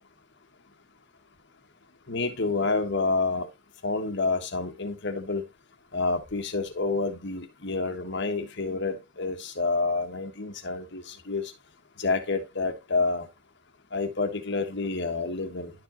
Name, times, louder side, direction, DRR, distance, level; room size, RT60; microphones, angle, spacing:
voice 1, 2.1-3.5 3.8-5.4 5.9-11.5 12.0-13.3 13.9-15.7, left 3 dB, 55° left, 1.4 m, -28 dB
11.5 x 4.9 x 2.9 m
head